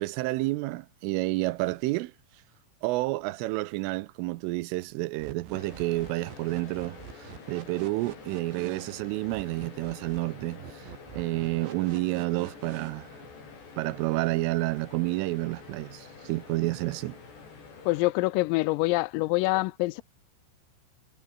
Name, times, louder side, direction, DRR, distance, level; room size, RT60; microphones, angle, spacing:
voice 1, 0.0-2.1 2.8-10.9 11.1-13.1 13.8-17.2, right 20 dB, 80° right, 3.2 m, -30 dB
sound 1, 5.1-12.9, right 8 dB, 60° right, 5.5 m, -45 dB
sound 2, 5.5-18.0, left 4 dB, 55° left, 9.3 m, -48 dB
voice 2, 17.9-20.0, left 22 dB, 90° left, 3.4 m, -25 dB
omnidirectional pair, 5.8 m